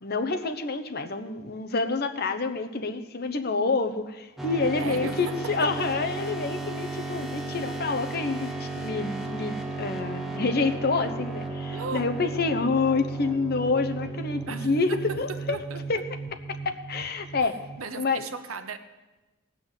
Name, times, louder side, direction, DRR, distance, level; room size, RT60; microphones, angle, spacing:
voice 1, 0.0-15.6 15.9-16.0 16.6-17.5 18.0-18.2, left 4 dB, 50° left, 9 dB, 0.9 m, -28 dB
sound 1, 4.4-17.9, right 3 dB, ahead, 1.5 m, -35 dB
voice 2, 4.8-5.7 11.7-12.1 14.5-15.8 17.4-17.5 17.8-18.8, right 4 dB, 85° right, 9 dB, 1.0 m, -36 dB
17.5 x 6.1 x 8.0 m, 1.1 s
head